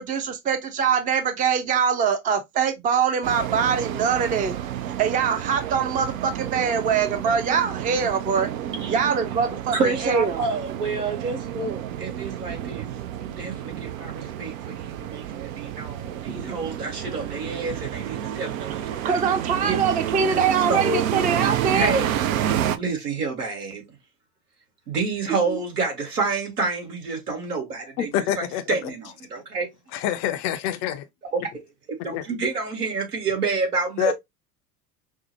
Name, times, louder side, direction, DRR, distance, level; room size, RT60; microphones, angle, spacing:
voice 1, 0.0-4.6 5.0-8.5 8.9-9.8 10.0-10.4 16.3-16.6 19.0-21.9 25.5-25.6, right 6 dB, 20° right, 0.5 m, -23 dB
sound 1, 3.2-22.8, right 11 dB, 60° right, 0.6 m, -30 dB
voice 2, 9.7-12.9 13.2-19.2 19.6-19.8 20.3-20.4 20.7-21.0 21.7-22.1 22.8-23.8 24.9-28.1 28.4-29.0 29.3-29.7 32.0-34.1, right 3 dB, 75° right, 1.7 m, -28 dB
voice 3, 28.0-28.9 29.9-31.0 32.1-32.3 34.0-34.1, left 11 dB, 40° left, 0.5 m, -26 dB
5.3 x 2.1 x 2.7 m
figure-of-eight pair, 75°, 46 cm